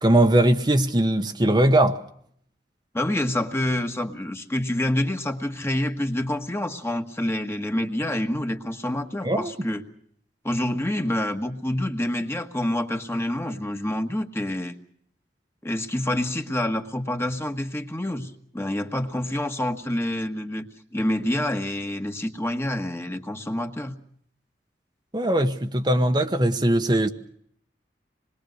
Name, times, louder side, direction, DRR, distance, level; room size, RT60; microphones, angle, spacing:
voice 1, 0.0-2.0 9.2-9.5 25.1-27.1, right 1 dB, 25° right, 1.1 m, -20 dB
voice 2, 2.9-9.8 10.4-14.8 15.6-23.9, left 1 dB, 15° left, 1.5 m, -27 dB
26.5 x 21.5 x 6.4 m
head